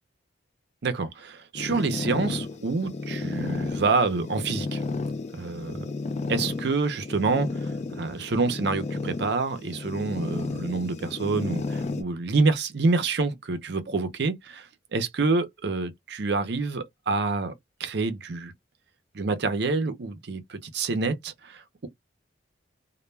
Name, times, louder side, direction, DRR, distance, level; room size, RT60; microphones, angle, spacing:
voice 1, 0.8-4.8 5.3-5.9 6.3-7.7 8.0-17.5 17.8-18.5 19.1-21.9, right 3 dB, 60° right, 0.6 m, -27 dB
sound 1, 1.5-12.0, left 3 dB, 40° left, 0.4 m, -33 dB
2.2 x 2.1 x 3.1 m
head